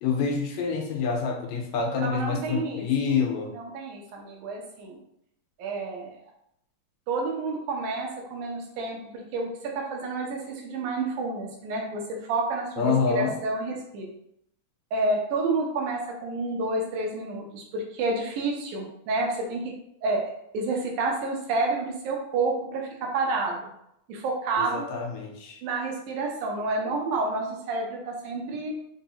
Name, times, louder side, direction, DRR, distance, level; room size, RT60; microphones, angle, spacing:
voice 1, 0.0-3.5 12.8-13.4 24.6-25.6, left 5 dB, 80° left, 1 dB, 1.7 m, -27 dB
voice 2, 2.0-2.9 3.5-5.0 5.6-6.1 7.1-9.5 9.7-14.1 14.9-19.6 20.0-20.2 20.5-23.7 24.1-24.9 25.6-28.7, right 3 dB, 85° right, 0 dB, 2.3 m, -29 dB
5.1 x 2.3 x 2.8 m, 0.76 s
omnidirectional pair, 3.5 m